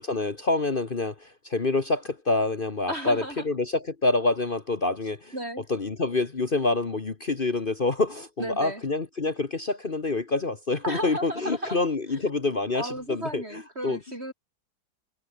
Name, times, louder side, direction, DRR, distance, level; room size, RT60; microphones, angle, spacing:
voice 1, 0.0-5.3 5.7-13.4 13.8-14.0, left 3 dB, 35° left, 1.5 m, -27 dB
voice 2, 2.9-3.5 5.3-5.7 8.4-8.8 10.8-12.2 12.8-14.3, right 1 dB, 40° right, 7.6 m, -34 dB
omnidirectional pair, 1.7 m